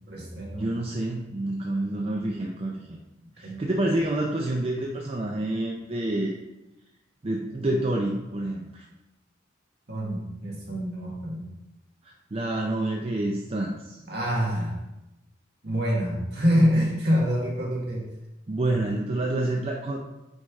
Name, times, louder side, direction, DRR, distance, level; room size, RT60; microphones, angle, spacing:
voice 1, 0.1-0.8 3.4-3.6 9.9-11.5 14.0-14.8 15.6-18.1, equal, 55° right, -3 dB, 1.7 m, -26 dB
voice 2, 0.6-3.0 3.4-6.3 7.2-8.8 12.0-14.0 18.5-20.0, right 1 dB, 30° right, 0 dB, 0.5 m, -28 dB
9.2 x 3.2 x 3.6 m, 0.97 s
head